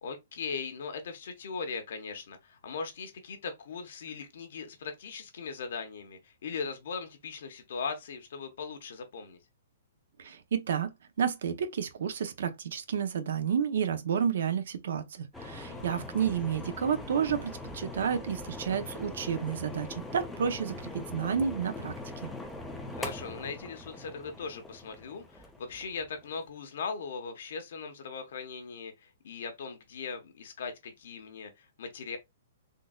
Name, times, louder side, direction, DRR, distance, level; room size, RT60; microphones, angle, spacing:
voice 1, 0.0-9.4 15.7-16.0 22.9-32.2, left 5 dB, 65° left, 0.9 m, -39 dB
voice 2, 10.2-10.9 11.2-21.9 22.2-22.3, right 7 dB, 70° right, 0.6 m, -31 dB
sound 1, 15.3-26.5, left 2 dB, 5° left, 0.5 m, -42 dB
3.7 x 2.6 x 2.2 m
hypercardioid pair, 160°, 0 cm